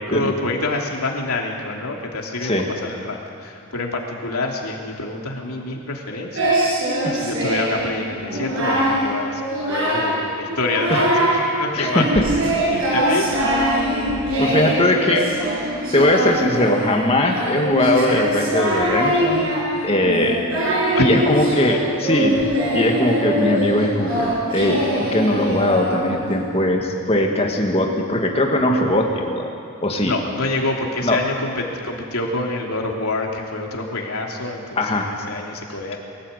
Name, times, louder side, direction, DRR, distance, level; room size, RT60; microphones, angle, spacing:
voice 1, 0.0-2.6 2.8-6.6 7.1-9.4 9.7-12.3 12.7-13.3 20.4-21.1 30.0-36.0, left 2 dB, 85° left, 0 dB, 3.0 m, -27 dB
Singing, 6.3-7.8 8.2-9.0 9.4-10.2 10.5-11.4 11.8-26.3, equal, 70° right, 6.7 m, -22 dB
voice 2, 11.8-12.2 14.4-15.4 15.9-19.5 19.8-20.4 21.0-29.5 29.8-30.1 31.0-31.2 34.8-35.1, left 1 dB, 25° left, 1 dB, 2.1 m, -20 dB
23.0 x 14.5 x 8.3 m, 2.5 s
head